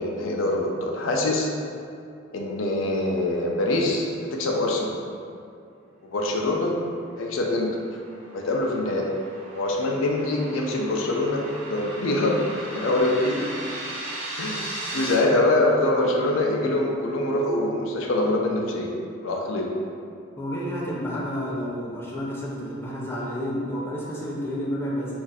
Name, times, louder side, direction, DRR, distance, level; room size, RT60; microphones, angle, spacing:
voice 1, 0.0-1.5 2.3-4.9 6.0-6.8 7.2-7.8 8.3-9.1 9.5-12.4 12.7-13.5 14.4-14.6 14.9-19.0 19.2-19.7, left 2 dB, 80° left, 0 dB, 0.4 m, -24 dB
sound 1, 7.4-15.1, right 1 dB, 80° right, 0.6 m, -37 dB
voice 2, 20.4-25.1, equal, 10° left, -5 dB, 0.4 m, -30 dB
2.5 x 2.4 x 4.0 m, 2.4 s
head